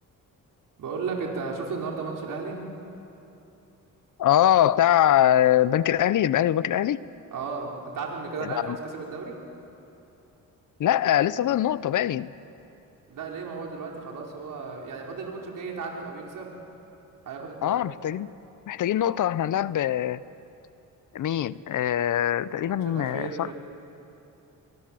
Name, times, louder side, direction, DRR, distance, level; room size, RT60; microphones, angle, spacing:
voice 1, 0.8-2.6 7.3-9.4 13.1-16.5 17.2-17.8 22.5-23.5, right 4 dB, 70° right, -1 dB, 4.9 m, -34 dB
voice 2, 4.2-7.0 8.4-8.8 10.8-12.3 17.6-18.3 18.7-20.2 21.1-23.5, left 11 dB, 65° left, 18 dB, 0.7 m, -23 dB
29.0 x 24.0 x 7.7 m, 2.9 s
cardioid pair, 90°, 33 cm